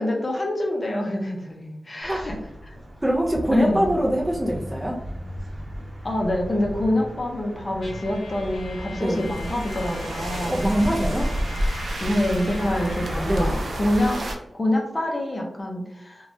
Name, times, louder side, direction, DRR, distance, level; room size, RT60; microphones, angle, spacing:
voice 1, 0.0-2.4 2.6-2.7 3.5-3.9 6.0-10.6 12.0-16.3, left 1 dB, 30° left, 0 dB, 0.5 m, -26 dB
sound 1, 2.0-14.1, equal, 40° right, 1.0 m, -35 dB
voice 2, 3.0-5.0 8.9-9.2 10.5-11.3 13.3-13.5, equal, 15° right, -2 dB, 0.4 m, -23 dB
Trumpet, 7.8-13.1, left 4 dB, 85° left, 0.5 m, -42 dB
sound 2, 9.1-14.3, equal, 70° right, 0.5 m, -30 dB
3.0 x 2.2 x 2.6 m, 0.88 s
wide cardioid pair, 135°, 0 cm